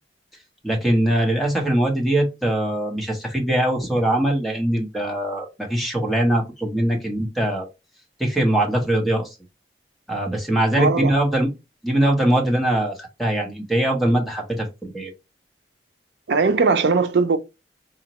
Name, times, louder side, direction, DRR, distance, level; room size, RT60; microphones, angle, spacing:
voice 1, 0.6-7.7 8.2-9.4 10.1-11.5 11.8-15.1, right 1 dB, ahead, 0.8 m, -22 dB
voice 2, 10.8-11.1 16.3-17.4, right 4 dB, 75° right, 0.5 m, -19 dB
5.0 x 2.1 x 2.8 m
head